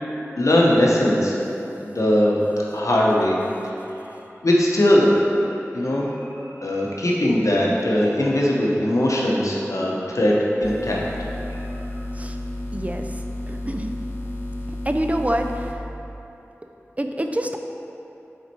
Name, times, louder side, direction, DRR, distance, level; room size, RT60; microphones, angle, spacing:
voice 1, 0.4-1.4 1.8-2.4 2.7-3.4 4.4-5.2 5.7-6.1 6.6-11.1 11.7-11.8, left 1 dB, 80° left, -3 dB, 0.9 m, -20 dB
sound 1, 10.6-15.7, left 1 dB, 45° left, 0.7 m, -32 dB
voice 2, 12.7-13.1 13.5-13.9 14.9-15.8 17.0-17.6, right 1 dB, 25° right, 4 dB, 0.4 m, -26 dB
5.6 x 4.4 x 4.5 m, 2.9 s
wide cardioid pair, 40°, 5 cm